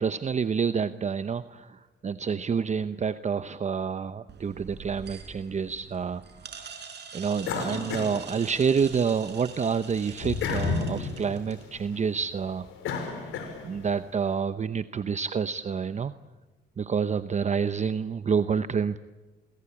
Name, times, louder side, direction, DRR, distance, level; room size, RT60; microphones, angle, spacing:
voice 1, 0.0-6.2 6.6-6.7 7.1-12.7 13.6-16.1 16.8-19.0, right 6 dB, 35° right, 12 dB, 0.9 m, -28 dB
sound 1, 4.3-11.8, right 6 dB, 60° right, 5.7 m, -44 dB
sound 2, 7.4-9.0 9.4-14.0, left 5 dB, 85° left, 5.3 m, -33 dB
28.5 x 23.5 x 8.7 m, 1.2 s
cardioid pair, 90°, 20 cm